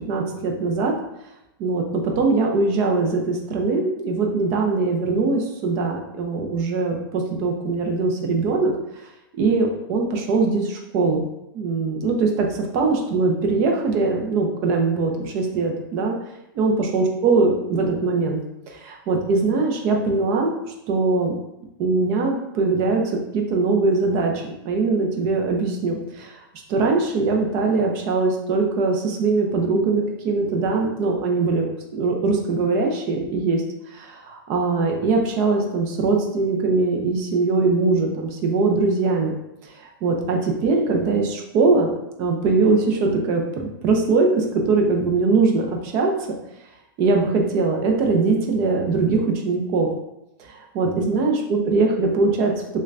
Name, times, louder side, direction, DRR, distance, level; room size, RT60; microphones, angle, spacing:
voice 1, 0.1-0.9 1.6-8.7 9.4-11.2 11.5-16.2 16.6-18.4 18.8-20.5 20.9-21.3 21.8-26.4 26.7-31.7 31.9-33.6 33.9-39.3 40.0-41.9 42.2-46.1 47.0-49.9 50.7-52.5, right 3 dB, 20° right, 2 dB, 0.4 m, -21 dB
6.4 x 2.2 x 2.4 m, 0.89 s
supercardioid pair, 180°, 12 cm